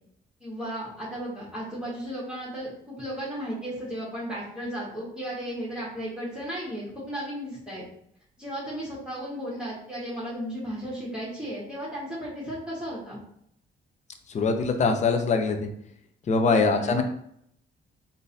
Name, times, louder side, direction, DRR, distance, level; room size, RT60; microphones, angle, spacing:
voice 1, 0.4-7.8 8.4-13.2 16.4-17.0, equal, 5° right, -9 dB, 1.3 m, -35 dB
voice 2, 14.3-15.7 16.3-17.0, left 4 dB, 35° left, 5 dB, 0.5 m, -23 dB
3.7 x 2.6 x 2.6 m, 0.70 s
cardioid pair, 90°, 20 cm